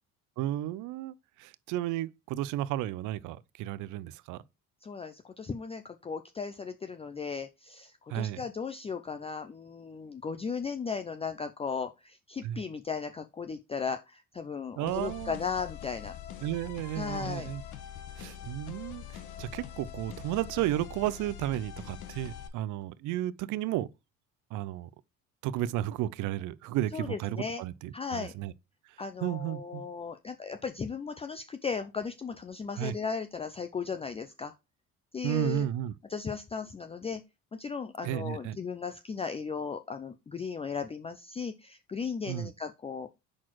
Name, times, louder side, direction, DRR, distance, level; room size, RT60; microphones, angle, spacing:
voice 1, 0.4-1.1 1.4-4.4 8.1-8.4 12.4-12.6 14.8-15.4 16.4-17.6 18.2-19.0 19.4-23.9 24.5-24.9 25.4-28.5 29.2-29.8 32.8-32.9 35.2-35.9 38.0-38.6 42.3-42.5, right 13 dB, 75° right, 0.6 m, -33 dB
voice 2, 4.8-16.1 16.9-17.5 26.9-27.6 27.9-28.3 29.0-34.5 35.1-35.7 36.1-37.2 37.5-43.1, left 5 dB, 20° left, 0.5 m, -36 dB
sound 1, 14.9-22.5, left 10 dB, 75° left, 1.3 m, -44 dB
6.2 x 4.2 x 4.5 m
cardioid pair, 105°, 31 cm